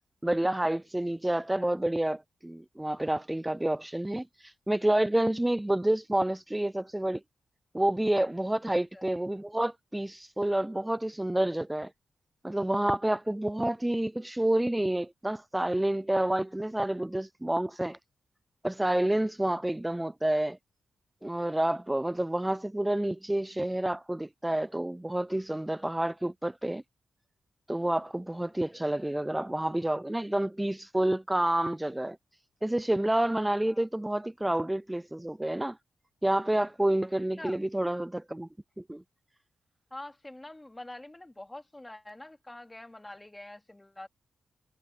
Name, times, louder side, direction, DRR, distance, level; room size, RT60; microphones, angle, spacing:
voice 1, 0.2-7.2 7.7-11.9 12.4-18.0 18.6-20.6 21.2-26.8 27.7-32.2 32.6-35.8 36.2-38.5 38.8-39.0, right 1 dB, 10° right, 0.3 m, -29 dB
voice 2, 8.7-9.0 28.7-28.8 33.6-33.9 37.4-37.6 39.9-44.1, left 1 dB, 15° left, 3.2 m, -45 dB
cardioid pair, 90°, 0 cm